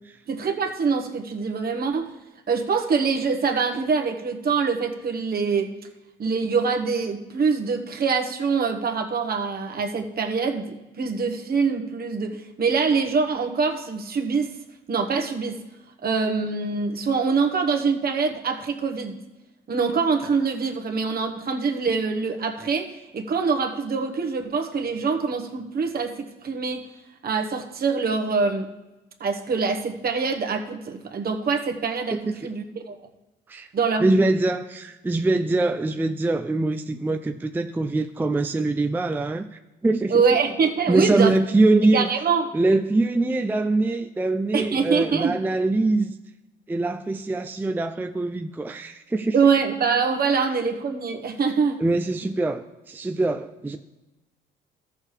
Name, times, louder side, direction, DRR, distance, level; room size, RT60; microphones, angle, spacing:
voice 1, 0.3-2.1 2.5-5.7 6.2-14.5 14.9-15.6 16.0-19.1 19.7-26.8 27.2-28.7 29.2-33.0 33.7-34.3 40.1-41.4 41.9-42.5 44.5-45.3 49.3-51.8, right 5 dB, 50° right, 4 dB, 1.2 m, -24 dB
voice 2, 32.1-32.5 33.5-33.7 34.0-40.2 40.9-42.1 42.5-46.1 46.7-49.4 51.8-53.8, right 2 dB, 10° right, 7 dB, 0.4 m, -23 dB
14.0 x 6.4 x 3.3 m, 1.0 s
cardioid pair, 90°, 20 cm